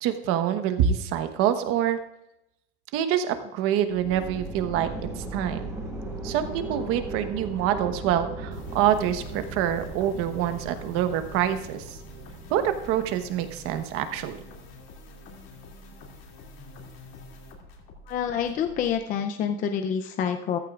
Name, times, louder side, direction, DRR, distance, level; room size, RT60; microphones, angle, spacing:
voice 1, 0.0-2.0 2.9-5.6 6.2-12.0 12.5-14.4, right 10 dB, 45° right, 9 dB, 1.1 m, -26 dB
sound 1, 3.8-13.8, right 2 dB, 10° right, 2.3 m, -38 dB
sound 2, 8.5-19.0, left 2 dB, 55° left, 2.6 m, -47 dB
voice 2, 18.1-20.6, left 8 dB, 25° left, 6 dB, 0.5 m, -27 dB
14.5 x 13.5 x 2.4 m, 0.88 s
supercardioid pair, 155°, 31 cm